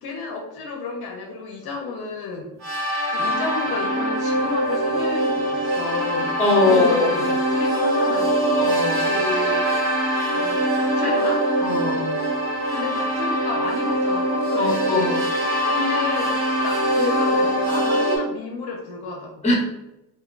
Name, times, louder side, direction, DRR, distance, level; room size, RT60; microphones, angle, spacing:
voice 1, 0.0-2.5 3.1-6.4 6.7-8.6 9.0-9.8 10.3-11.4 12.7-15.1 15.7-19.3, left 3 dB, 55° left, 1 dB, 0.6 m, -31 dB
sound 1, 2.6-18.2, right 1 dB, 60° right, 1.4 m, -23 dB
voice 2, 6.4-7.1 8.6-9.1 11.0-11.1 11.6-12.1 14.6-15.2 19.4-19.5, left 2 dB, 15° left, -1 dB, 0.9 m, -21 dB
2.6 x 2.2 x 3.8 m, 0.90 s
cardioid pair, 130°, 45 cm